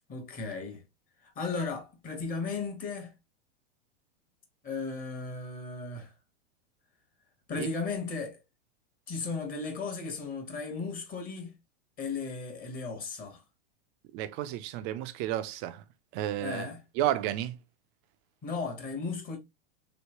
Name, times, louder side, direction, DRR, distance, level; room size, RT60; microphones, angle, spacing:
voice 1, 0.1-0.8 1.4-3.1 4.6-6.1 7.5-8.4 9.1-11.5 12.0-13.4 16.4-16.8 18.4-19.4, left 4 dB, 25° left, 1.0 m, -35 dB
voice 2, 14.1-15.8 16.1-16.7 17.0-17.6, right 12 dB, 35° right, 0.4 m, -32 dB
3.1 x 2.8 x 2.8 m
hypercardioid pair, 120°, 31 cm